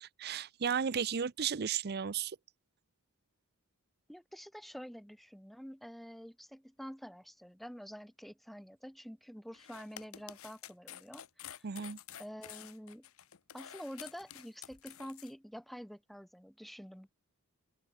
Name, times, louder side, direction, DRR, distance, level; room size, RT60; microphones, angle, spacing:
voice 1, 0.0-2.4 11.6-12.0, right 7 dB, 50° right, 0.6 m, -34 dB
voice 2, 4.1-11.7 12.2-13.1 13.5-17.1, equal, ahead, 0.9 m, -48 dB
sound 1, 9.5-15.3, left 11 dB, 70° left, 0.9 m, -50 dB
head